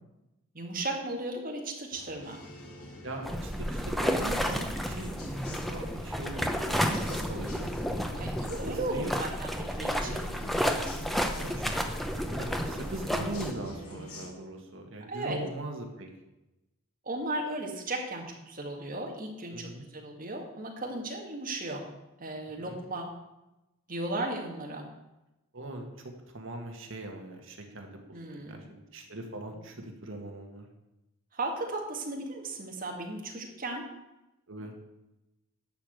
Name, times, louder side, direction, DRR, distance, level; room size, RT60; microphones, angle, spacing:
voice 1, 0.5-2.4 8.2-10.2 15.1-15.4 17.0-21.8 22.2-23.1 23.9-24.9 28.1-28.6 29.5-29.7 31.3-33.8, right 2 dB, 40° right, 1 dB, 1.9 m, -36 dB
sound 1, 1.9-14.3, equal, 85° left, 2.2 m, -46 dB
voice 2, 3.0-7.7 8.7-9.1 11.4-16.1 19.5-19.8 22.6-22.8 25.5-28.0 28.3-30.7 34.5-34.7, right 1 dB, 60° right, 2 dB, 1.7 m, -40 dB
sound 2, 3.2-13.5, equal, ahead, 0.7 m, -31 dB
11.0 x 5.0 x 7.8 m, 0.96 s
head